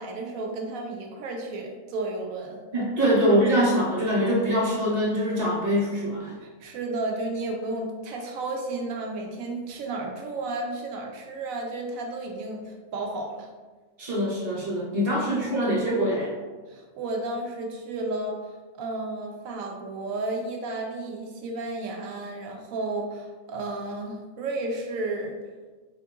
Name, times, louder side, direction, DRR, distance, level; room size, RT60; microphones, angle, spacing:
voice 1, 0.0-2.6 3.0-3.1 6.4-13.5 15.3-15.5 16.7-25.4, right 2 dB, 80° right, 2 dB, 1.0 m, -33 dB
voice 2, 2.7-6.3 14.0-16.3, equal, 45° right, -6 dB, 1.3 m, -24 dB
4.4 x 3.6 x 2.3 m, 1.3 s
omnidirectional pair, 1.4 m